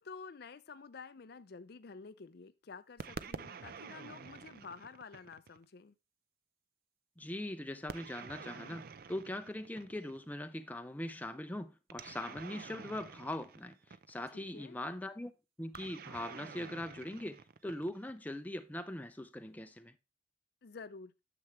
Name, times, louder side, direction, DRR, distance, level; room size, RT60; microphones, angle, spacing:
voice 1, 0.0-5.9 14.3-14.8 20.6-21.1, left 5 dB, 55° left, 0.5 m, -50 dB
sound 1, 3.0-5.6 7.9-10.2 11.9-14.4 15.7-18.2, right 5 dB, 50° right, 0.5 m, -48 dB
voice 2, 7.2-15.3 15.6-20.0, left 1 dB, 10° left, 0.5 m, -41 dB
9.9 x 6.9 x 3.2 m
head